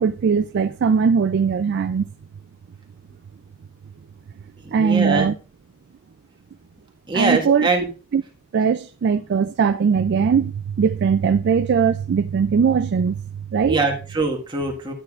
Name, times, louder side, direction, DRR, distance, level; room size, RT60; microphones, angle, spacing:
voice 1, 0.0-2.1 4.7-5.3 7.1-7.7 8.1-8.2 8.5-13.2 13.5-13.8, right 6 dB, 55° right, 0.3 m, -20 dB
voice 2, 4.6-5.3 7.1-7.9 13.7-14.9, right 3 dB, 20° right, 1.6 m, -23 dB
11.5 x 9.0 x 2.4 m
head